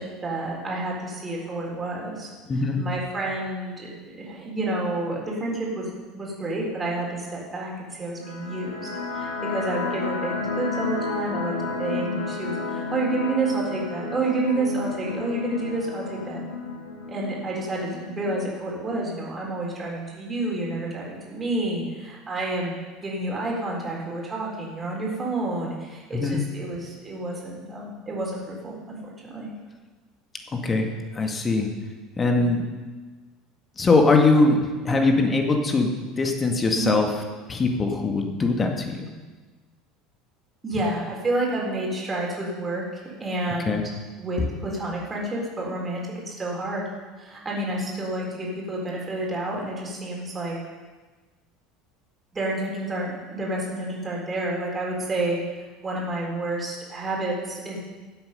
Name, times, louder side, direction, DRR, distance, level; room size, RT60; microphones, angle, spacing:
voice 1, 0.0-5.9 6.1-8.9 9.1-16.4 17.1-22.7 23.0-29.0 29.2-29.5 32.4-32.5 34.9-35.0 36.7-36.9 40.6-43.8 44.2-46.8 47.2-50.6 52.3-55.4 55.8-57.8, right 2 dB, 25° right, -3 dB, 3.9 m, -29 dB
voice 2, 2.5-2.8 26.1-26.4 30.5-30.9 31.1-31.7 32.2-32.6 33.8-37.1 37.5-39.1 43.7-43.8, left 3 dB, 25° left, 3 dB, 2.0 m, -21 dB
sound 1, 8.2-19.1, left 4 dB, 85° left, 1.9 m, -32 dB
15.0 x 7.9 x 5.6 m, 1.3 s
figure-of-eight pair, 70°, 0 cm